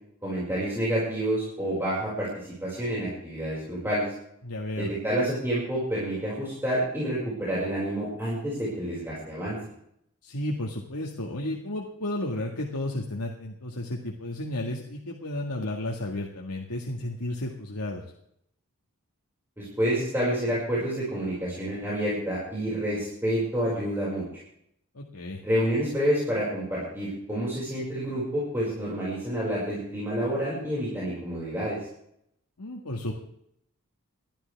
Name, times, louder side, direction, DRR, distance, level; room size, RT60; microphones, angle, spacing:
voice 1, 0.2-4.1 4.8-9.6 19.6-24.2 25.4-31.8, right 1 dB, 10° right, -8 dB, 5.6 m, -28 dB
voice 2, 4.4-4.9 10.2-18.0 24.9-25.4 32.6-33.1, left 1 dB, 90° left, 0 dB, 1.8 m, -33 dB
21.5 x 12.5 x 3.5 m, 0.73 s
head